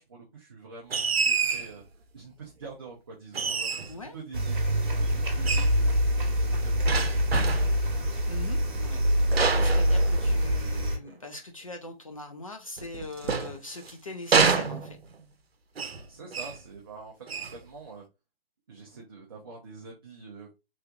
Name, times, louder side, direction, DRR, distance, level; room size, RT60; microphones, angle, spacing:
voice 1, 0.0-1.8 2.1-6.0 6.4-8.0 16.1-18.0 18.7-20.5, right 4 dB, 25° right, -2 dB, 0.6 m, -46 dB
sound 1, 0.9-1.7 3.3-4.0 5.4-5.8 6.9-7.8 9.3-10.6 12.8-13.9 14.3-15.2 15.8-16.0 16.3-16.6 17.3-17.6, right 5 dB, 80° right, 0.7 m, -27 dB
sound 2, 4.3-11.0, equal, 55° right, 1.2 m, -25 dB
voice 2, 8.3-9.0 9.5-15.0, left 2 dB, 35° left, 5 dB, 0.4 m, -41 dB
3.5 x 3.3 x 2.4 m, 0.26 s
figure-of-eight pair, 150°, 30 cm